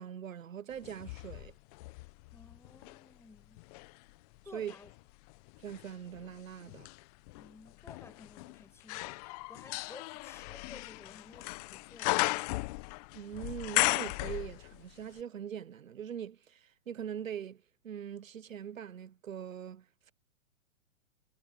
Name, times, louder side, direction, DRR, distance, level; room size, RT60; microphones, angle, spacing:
voice 1, 0.0-1.5 4.5-4.7 5.6-6.9 13.1-20.1, right 9 dB, 80° right, 1.0 m, -42 dB
sound 1, 0.8-3.0 3.6-14.9 15.2-15.3, left 25 dB, 30° left, 0.9 m, -36 dB
voice 2, 2.3-3.6 4.5-4.9 7.3-12.5, left 3 dB, 5° left, 5.4 m, -55 dB
hypercardioid pair, 130°, 39 cm